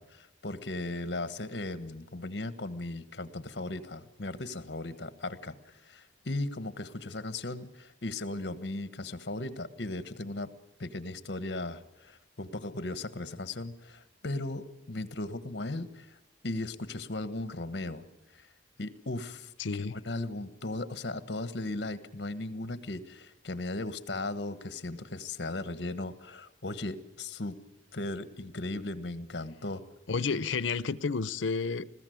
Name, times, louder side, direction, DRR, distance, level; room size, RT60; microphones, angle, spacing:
voice 1, 0.0-10.5 10.8-16.2 16.4-18.1 18.3-18.5 18.8-27.6 27.9-29.8, left 2 dB, 60° left, 1.3 m, -37 dB
voice 2, 19.6-20.0 30.1-32.0, left 4 dB, 85° left, 0.7 m, -31 dB
20.5 x 15.5 x 9.3 m
head